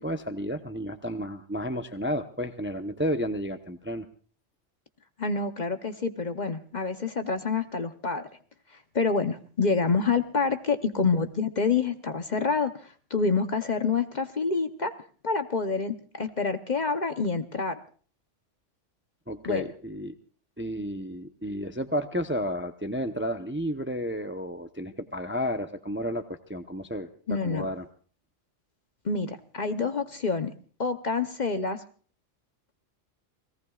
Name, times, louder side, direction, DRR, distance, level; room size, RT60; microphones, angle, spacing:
voice 1, 0.0-4.1 19.3-20.1 20.6-26.2 26.5-27.1 27.4-27.9, equal, 10° right, 7 dB, 0.7 m, -32 dB
voice 2, 5.2-8.3 8.9-14.9 15.2-17.8 19.4-19.6 27.3-27.7 29.0-30.5 30.8-31.8, left 4 dB, 40° left, 8 dB, 0.9 m, -27 dB
30.0 x 18.0 x 2.4 m, 0.42 s
omnidirectional pair, 1.3 m